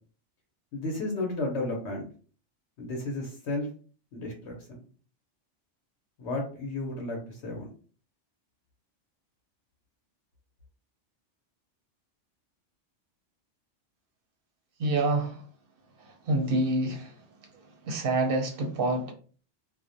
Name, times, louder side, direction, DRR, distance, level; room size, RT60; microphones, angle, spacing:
voice 1, 0.7-2.0 2.8-3.7 4.1-4.8 6.2-7.7, left 2 dB, 70° left, 1 dB, 0.9 m, -33 dB
voice 2, 14.8-15.4 16.0-17.2 17.5-19.1, right 2 dB, 60° right, 3 dB, 0.7 m, -28 dB
2.3 x 2.0 x 2.6 m, 0.41 s
omnidirectional pair, 1.2 m